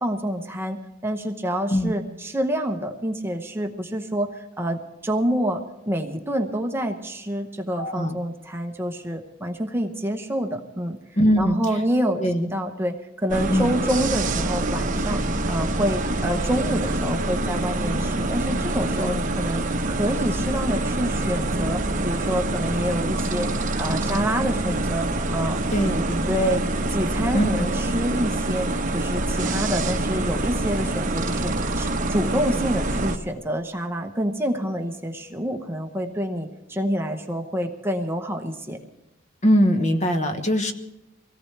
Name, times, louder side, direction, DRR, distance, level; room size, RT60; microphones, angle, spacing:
voice 1, 0.0-11.0 11.4-15.2 15.5-19.6 19.9-23.5 23.8-25.6 25.9-26.6 26.9-28.7 28.9-38.8, equal, 10° right, 4 dB, 1.0 m, -27 dB
voice 2, 7.8-8.2 11.2-11.6 12.2-12.5 13.5-13.7 19.0-19.2 25.7-26.2 27.3-27.7 39.4-40.7, equal, 35° left, 6 dB, 1.1 m, -21 dB
sound 1, 13.3-33.2, right 2 dB, 40° right, 1.1 m, -25 dB
24.5 x 17.5 x 3.3 m, 0.94 s
head